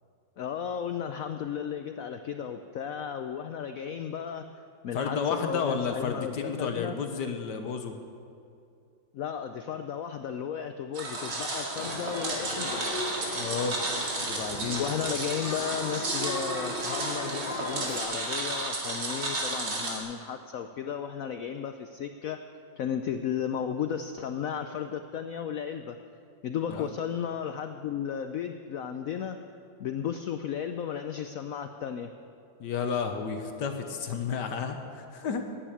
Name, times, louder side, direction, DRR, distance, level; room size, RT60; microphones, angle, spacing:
voice 1, 0.4-4.5 4.8-6.9 9.1-12.9 14.8-22.4 22.8-26.0 26.4-29.4 29.8-32.1, left 8 dB, 90° left, 8 dB, 0.7 m, -34 dB
voice 2, 4.9-8.0 13.3-13.8 14.2-14.8 26.7-26.9 32.6-35.4, left 6 dB, 65° left, 6 dB, 1.4 m, -31 dB
sound 1, 10.9-20.0, right 2 dB, 65° right, 2.7 m, -33 dB
sound 2, 11.7-18.0, left 1 dB, 35° left, 1.2 m, -37 dB
10.0 x 9.1 x 9.8 m, 2.5 s
omnidirectional pair, 2.1 m